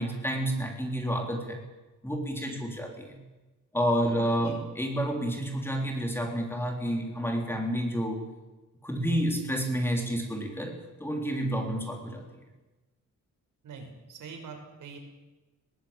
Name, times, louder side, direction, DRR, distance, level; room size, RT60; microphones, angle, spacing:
voice 1, 0.0-1.6 2.0-3.2 3.7-8.2 8.8-10.7 11.0-12.2, equal, 5° left, 2 dB, 3.6 m, -29 dB
voice 2, 13.6-15.0, right 5 dB, 80° right, 3 dB, 5.9 m, -44 dB
21.0 x 18.5 x 8.9 m, 1.1 s
wide cardioid pair, 170°, 31 cm